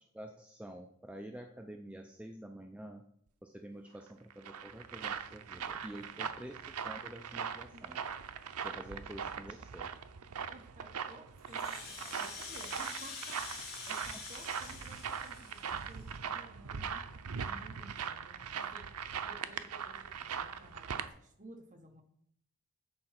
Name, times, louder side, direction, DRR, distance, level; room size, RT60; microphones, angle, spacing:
voice 1, 0.1-3.0 3.4-8.0 8.6-9.9 13.9-14.2, right 1 dB, 5° right, 4 dB, 0.4 m, -48 dB
sound 1, 4.1-21.1, right 7 dB, 90° right, 0.6 m, -41 dB
voice 2, 10.4-17.0 17.4-18.9 19.2-22.0, right 2 dB, 35° right, 4 dB, 1.3 m, -55 dB
Rattle (instrument), 11.4-16.1, left 4 dB, 45° left, 2.7 m, -46 dB
8.7 x 4.4 x 5.8 m, 0.69 s
head